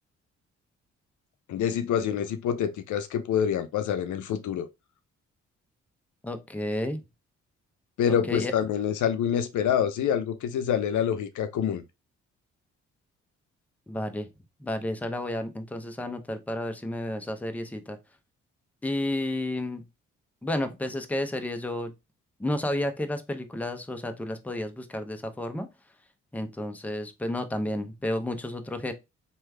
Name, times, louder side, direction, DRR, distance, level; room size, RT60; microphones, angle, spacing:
voice 1, 1.5-4.7 8.0-11.8, left 9 dB, 70° left, 0.5 m, -26 dB
voice 2, 6.2-7.0 8.1-8.5 13.9-14.3 14.6-18.0 18.8-19.8 20.4-21.9 22.4-25.7 26.3-28.9, left 1 dB, 5° left, 0.6 m, -31 dB
3.2 x 2.3 x 3.2 m
supercardioid pair, 45°, 31 cm